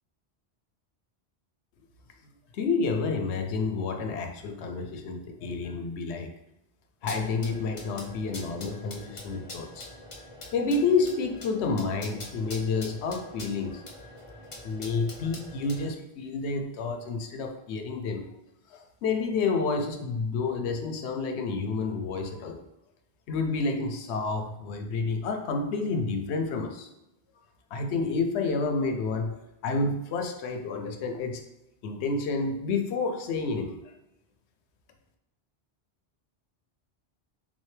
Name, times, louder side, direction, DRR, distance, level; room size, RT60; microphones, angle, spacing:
voice 1, 2.5-6.3 7.0-9.9 10.5-13.8 14.6-18.2 18.7-22.6 23.3-26.9 27.7-29.3 29.6-31.4 31.8-33.8, left 4 dB, 75° left, 4 dB, 0.9 m, -29 dB
sound 1, 7.0-15.9, left 2 dB, 35° left, 0.6 m, -44 dB
3.6 x 3.2 x 3.2 m, 0.92 s
omnidirectional pair, 1.1 m